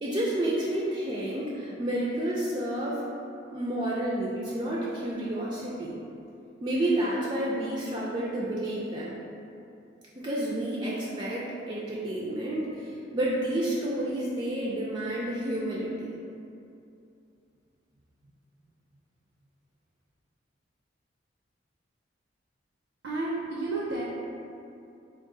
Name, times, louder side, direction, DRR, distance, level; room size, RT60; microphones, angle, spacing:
voice 1, 0.0-3.0 3.5-5.9 6.6-9.2 10.1-16.1, right 1 dB, 25° right, -5 dB, 0.3 m, -30 dB
voice 2, 23.0-24.0, right 2 dB, 90° right, -4 dB, 0.5 m, -31 dB
3.6 x 2.3 x 3.8 m, 2.6 s
head